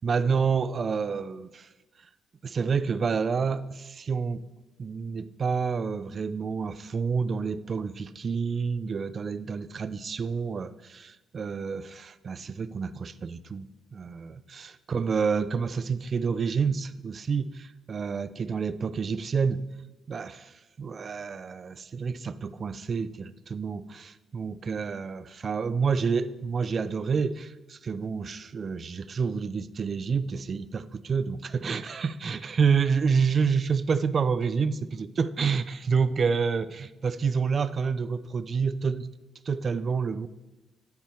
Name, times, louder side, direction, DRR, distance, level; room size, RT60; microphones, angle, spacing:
voice 1, 0.0-1.7 2.4-4.5 4.8-13.7 13.9-19.6 20.1-20.4 20.8-39.1 39.5-40.3, right 5 dB, 45° right, 15 dB, 0.4 m, -28 dB
9.2 x 7.2 x 4.4 m, 1.1 s
cardioid pair, 90°, 0 cm